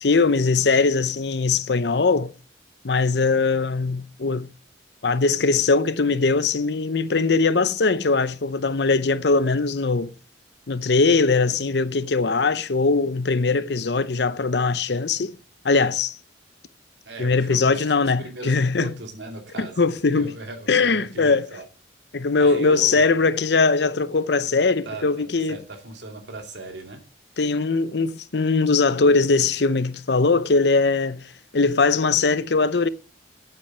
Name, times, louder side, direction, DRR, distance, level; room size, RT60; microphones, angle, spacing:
voice 1, 0.0-2.3 2.8-4.5 5.0-10.1 10.7-15.4 15.6-16.1 17.2-18.9 19.6-20.3 20.7-21.5 22.1-25.6 27.4-32.9, left 4 dB, 70° left, 0.7 m, -21 dB
voice 2, 17.1-17.9 18.2-19.9 20.1-21.7 22.4-23.2 24.8-27.0, right 2 dB, 80° right, 2.7 m, -38 dB
8.6 x 8.4 x 6.2 m
head